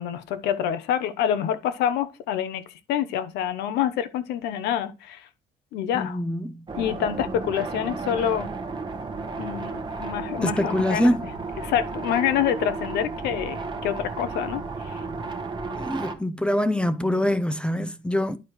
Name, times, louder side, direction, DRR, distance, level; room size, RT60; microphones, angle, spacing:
voice 1, 0.0-5.3 5.7-6.2 6.8-8.5 9.4-11.3 11.6-15.0, left 9 dB, 85° left, 0.9 m, -27 dB
voice 2, 5.9-6.5 10.4-11.2 15.8-18.4, left 1 dB, 5° left, 0.5 m, -24 dB
sound 1, 6.7-16.2, right 3 dB, 25° right, 1.1 m, -33 dB
11.0 x 4.5 x 3.1 m
cardioid pair, 110°, 17 cm